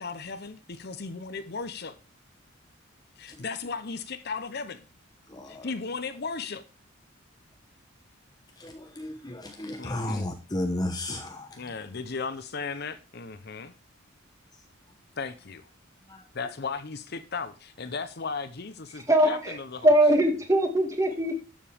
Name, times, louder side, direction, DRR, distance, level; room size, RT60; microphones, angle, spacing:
voice 1, 0.0-2.0 3.2-4.8 5.5-6.6 9.8-10.2 11.6-13.7 15.2-15.7 16.3-19.9, left 4 dB, 50° left, 0.8 m, -36 dB
voice 2, 5.3-5.7 8.6-11.6 16.1-16.2, left 1 dB, 20° left, 1.0 m, -33 dB
voice 3, 18.9-19.6 19.8-21.3, right 1 dB, 15° right, 2.2 m, -21 dB
12.5 x 7.4 x 3.5 m
head